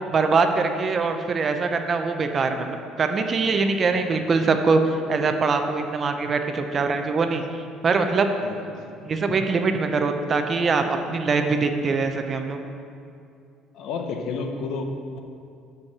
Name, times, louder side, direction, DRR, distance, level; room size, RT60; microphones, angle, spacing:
voice 1, 0.1-8.3 9.0-12.6, right 4 dB, 30° right, 6 dB, 0.6 m, -23 dB
voice 2, 3.9-4.2 8.4-8.9 13.7-14.9, left 4 dB, 65° left, 4 dB, 0.8 m, -31 dB
6.4 x 5.4 x 7.1 m, 2.5 s
cardioid pair, 145°, 0 cm